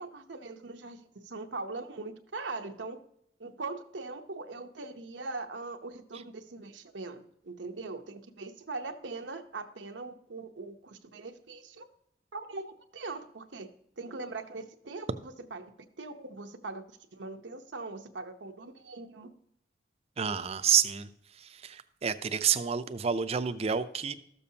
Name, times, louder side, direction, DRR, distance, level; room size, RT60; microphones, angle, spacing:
voice 1, 0.0-3.0 3.4-11.9 12.3-13.7 14.0-15.7 16.0-16.8 17.1-19.3, right 3 dB, 90° right, 6 dB, 0.8 m, -41 dB
voice 2, 20.2-21.1 21.4-24.1, right 7 dB, 35° right, 11 dB, 0.5 m, -29 dB
13.0 x 6.9 x 2.8 m, 0.73 s
head